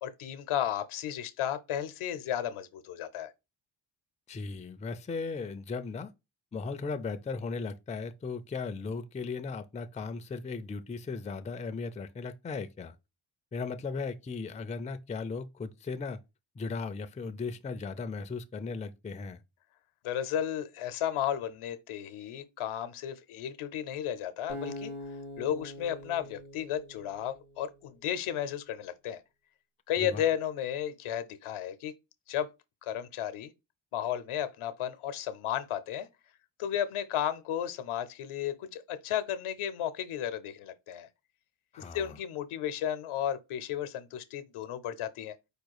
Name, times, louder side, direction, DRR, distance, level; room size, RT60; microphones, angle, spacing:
voice 1, 0.0-3.3 20.0-24.9 25.4-29.2 29.9-31.9 32.3-32.5 32.8-33.5 33.9-36.1 36.6-41.1 41.9-45.3, left 10 dB, 85° left, 0.8 m, -33 dB
voice 2, 4.3-6.1 6.5-12.9 13.5-16.2 16.6-19.4 30.0-30.2 41.7-42.2, left 4 dB, 15° left, 0.4 m, -37 dB
Acoustic guitar, 24.5-27.7, left 1 dB, 90° right, 3.3 m, -43 dB
4.9 x 2.3 x 4.6 m
cardioid pair, 90°, 48 cm